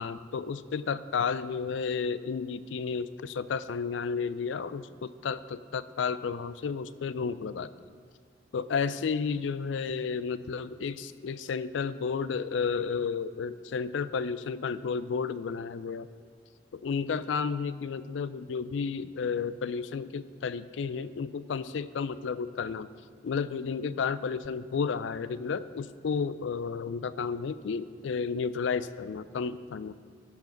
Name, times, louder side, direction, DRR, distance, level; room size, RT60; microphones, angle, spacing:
voice 1, 0.0-7.7 8.5-16.1 16.7-22.9 23.2-29.9, left 5 dB, 70° left, 15 dB, 0.4 m, -32 dB
14.5 x 4.9 x 5.9 m, 2.1 s
head